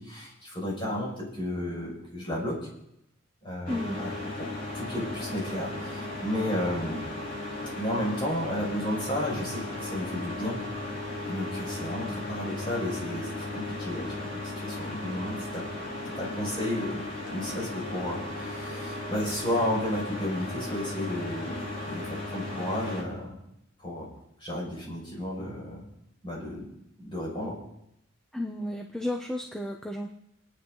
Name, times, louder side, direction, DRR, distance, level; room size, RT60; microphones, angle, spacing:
voice 1, 0.0-2.6 3.4-4.1 4.4-4.5 4.7-7.1 7.7-10.6 11.2-15.6 16.0-17.0 17.3-23.4 23.8-24.1 24.4-25.9 26.2-26.7 27.0-27.6, left 1 dB, 25° left, -4 dB, 6.4 m, -33 dB
sound 1, 3.7-23.0, left 2 dB, 50° left, 6.7 m, -36 dB
voice 2, 3.7-4.0 28.3-30.1, left 1 dB, 5° left, 1 dB, 1.0 m, -33 dB
28.5 x 9.7 x 4.0 m, 0.80 s
head